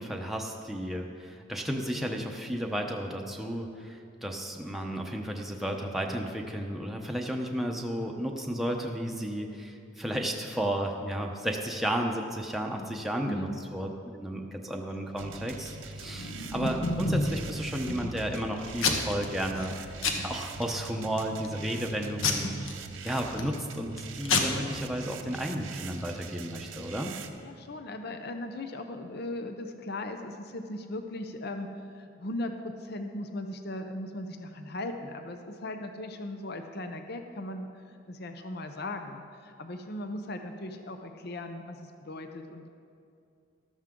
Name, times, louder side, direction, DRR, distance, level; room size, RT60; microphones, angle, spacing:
voice 1, 0.0-22.5 23.0-27.1, equal, ahead, 1 dB, 0.8 m, -33 dB
voice 2, 12.7-13.0 13.3-13.6 16.1-16.4 27.4-42.7, left 1 dB, 50° left, 6 dB, 0.7 m, -38 dB
sound 1, 15.2-27.3, right 4 dB, 70° right, 0.8 m, -42 dB
Packing tape duct tape / Tearing, 16.0-17.4 17.9-18.4 18.8-19.3 19.6-19.7 20.0-20.7 21.2-21.5 22.2-23.5 24.0-24.1 24.3-24.4, left 3 dB, 85° left, 1.2 m, -29 dB
13.5 x 13.0 x 3.7 m, 2.5 s
head